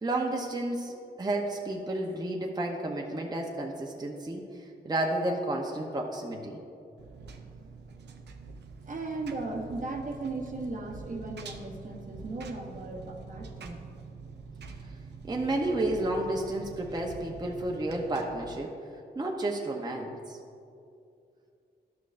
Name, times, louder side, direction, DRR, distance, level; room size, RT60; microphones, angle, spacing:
voice 1, 0.0-4.4 4.8-6.6 15.2-18.8 19.2-20.4, right 1 dB, 25° right, 0 dB, 0.7 m, -31 dB
Engine, 7.0-18.6, right 4 dB, 80° right, 0.6 m, -45 dB
voice 2, 8.8-13.8, right 2 dB, 50° right, 2 dB, 0.9 m, -37 dB
11.5 x 6.3 x 2.5 m, 2.5 s
cardioid pair, 70°, 17 cm